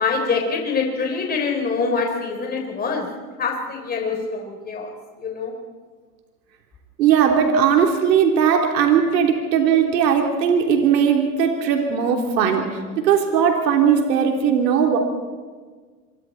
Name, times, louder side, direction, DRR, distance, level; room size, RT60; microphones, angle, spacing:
voice 1, 0.0-3.1 3.4-4.9 5.2-5.5, left 4 dB, 20° left, 2 dB, 3.5 m, -24 dB
voice 2, 7.0-12.7 13.0-15.0, right 7 dB, 80° right, 2 dB, 3.5 m, -18 dB
26.5 x 23.5 x 4.3 m, 1.5 s
supercardioid pair, 130°, 49 cm